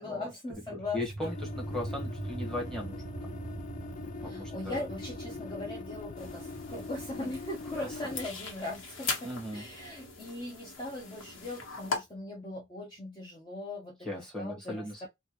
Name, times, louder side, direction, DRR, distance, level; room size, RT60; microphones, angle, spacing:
voice 1, 0.0-1.3 4.2-15.1, left 2 dB, 25° left, 0.8 m, -40 dB
sound 1, 0.5-11.6, right 2 dB, 35° right, 0.5 m, -44 dB
voice 2, 0.7-3.0 4.2-4.9 9.2-9.6 14.0-15.1, left 1 dB, 5° left, 1.3 m, -37 dB
sound 2, 1.2-8.3, left 3 dB, 40° left, 0.3 m, -43 dB
sound 3, 6.2-12.0, left 4 dB, 75° left, 1.2 m, -40 dB
3.1 x 2.4 x 3.0 m
head